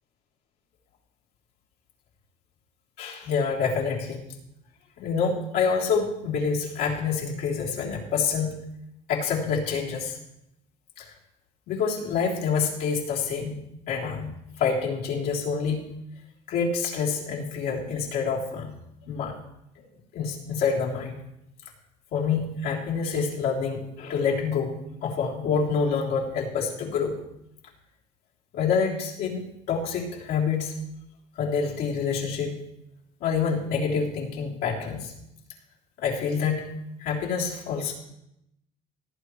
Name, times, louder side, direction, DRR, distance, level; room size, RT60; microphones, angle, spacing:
voice 1, 3.0-4.3 5.0-8.6 9.1-10.2 11.0-11.1 11.7-13.6 13.9-15.9 16.5-18.7 19.1-19.3 20.1-21.2 22.1-27.2 28.5-30.8 31.4-32.6 33.2-35.1 36.0-36.7 37.0-37.9, left 5 dB, 75° left, -3 dB, 3.3 m, -27 dB
18.0 x 9.9 x 3.2 m, 0.82 s
cardioid pair, 125°, 17 cm